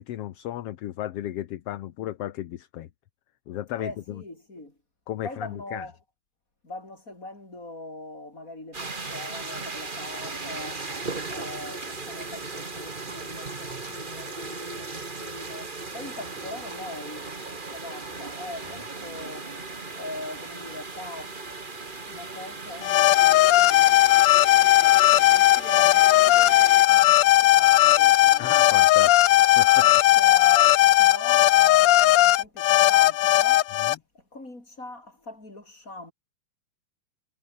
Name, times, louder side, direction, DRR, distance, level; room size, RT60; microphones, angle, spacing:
voice 1, 0.0-2.9 3.5-4.2 5.1-5.8 28.4-29.8 33.8-34.0, left 13 dB, 65° left, 1.9 m, -34 dB
voice 2, 3.8-4.8 5.2-6.0 6.6-10.9 11.3-19.6 19.9-21.4 22.1-24.0 24.7-28.7 29.8-33.7 34.1-36.1, left 2 dB, 25° left, 7.4 m, -41 dB
sound 1, 8.7-26.9, right 3 dB, 20° right, 1.7 m, -37 dB
sound 2, 22.8-33.9, left 15 dB, 80° left, 1.3 m, -17 dB
sound 3, 27.7-29.5 30.5-31.8, right 4 dB, 80° right, 7.9 m, -58 dB
omnidirectional pair, 3.4 m